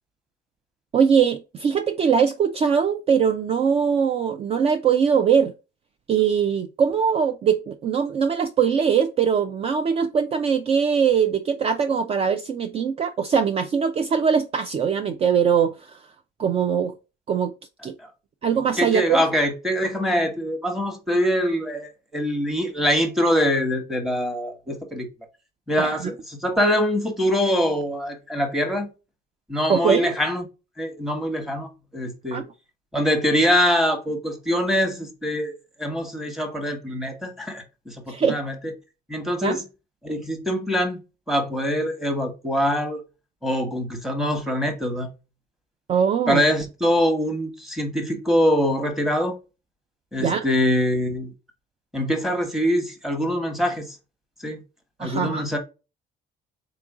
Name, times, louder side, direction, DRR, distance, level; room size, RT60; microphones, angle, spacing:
voice 1, 0.9-5.5 6.1-16.0 16.4-16.9 17.3-17.5 17.8-17.9 18.4-19.2 25.8-26.1 29.7-30.1 32.3-32.4 38.1-38.4 39.4-39.6 45.9-46.4 50.2-50.4 55.0-55.4, right 7 dB, 35° right, 0.4 m, -21 dB
voice 2, 18.8-25.1 25.7-28.9 29.5-30.5 30.8-32.4 32.9-35.5 35.8-38.5 39.1-39.6 40.0-41.0 41.3-43.0 43.4-45.1 46.3-49.4 50.1-51.3 51.9-54.0 54.4-54.6 55.0-55.6, equal, ahead, 1.0 m, -24 dB
3.8 x 2.5 x 3.6 m
cardioid pair, 110°, 17 cm